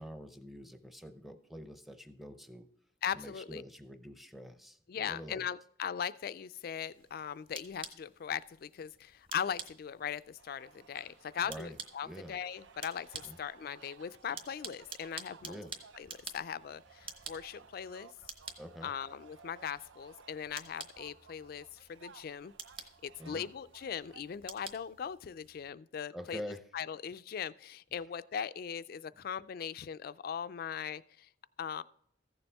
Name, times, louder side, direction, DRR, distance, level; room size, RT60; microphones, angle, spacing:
voice 1, 0.0-2.7 3.1-5.5 11.4-11.8 12.0-12.3 13.2-13.4 15.4-15.7 18.6-18.9 23.2-23.5 26.1-26.6, equal, ahead, 8 dB, 0.6 m, -46 dB
voice 2, 3.0-3.6 4.9-15.6 16.0-16.1 16.3-18.1 18.8-22.5 23.0-26.4 26.7-31.3 31.6-31.8, left 8 dB, 50° left, 16 dB, 0.3 m, -39 dB
sound 1, 6.9-25.7, right 4 dB, 30° right, 1.0 m, -51 dB
sound 2, 10.4-24.2, right 6 dB, 90° right, 0.6 m, -58 dB
14.5 x 6.9 x 3.4 m, 0.70 s
head